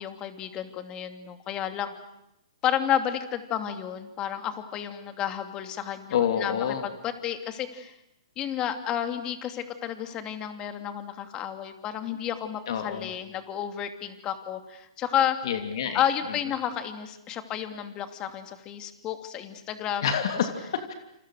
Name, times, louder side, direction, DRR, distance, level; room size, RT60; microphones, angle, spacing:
voice 1, 0.0-1.9 2.6-7.9 8.4-15.4 15.9-20.1, left 10 dB, 25° left, 7 dB, 2.8 m, -31 dB
voice 2, 6.1-6.9 12.7-13.1 15.4-16.0 20.0-20.9, left 8 dB, 60° left, 6 dB, 3.0 m, -28 dB
28.5 x 28.0 x 6.5 m, 0.84 s
hypercardioid pair, 135°, 3 cm